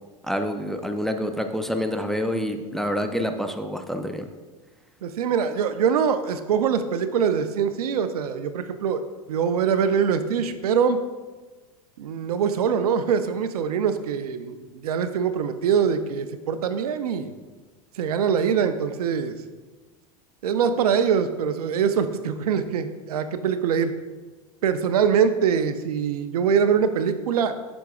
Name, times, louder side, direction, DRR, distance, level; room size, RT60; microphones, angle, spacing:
voice 1, 0.3-4.3, equal, ahead, 5 dB, 0.5 m, -27 dB
voice 2, 5.0-9.0 9.3-11.0 12.0-17.3 18.0-19.4 20.4-23.9 24.6-27.5, right 7 dB, 80° right, 10 dB, 0.5 m, -23 dB
7.9 x 6.1 x 2.4 m, 1.3 s
hypercardioid pair, 95°, 19 cm